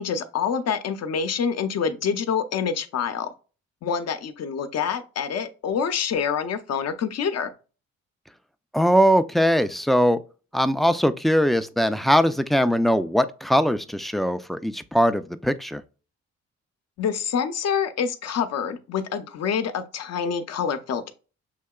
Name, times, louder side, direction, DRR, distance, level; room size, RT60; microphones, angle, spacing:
voice 1, 0.0-3.3 3.8-7.5 17.0-21.1, left 7 dB, 60° left, 0.7 m, -26 dB
voice 2, 8.7-10.2 10.5-15.8, equal, ahead, 0.3 m, -21 dB
6.5 x 2.8 x 2.3 m
supercardioid pair, 70°, 29 cm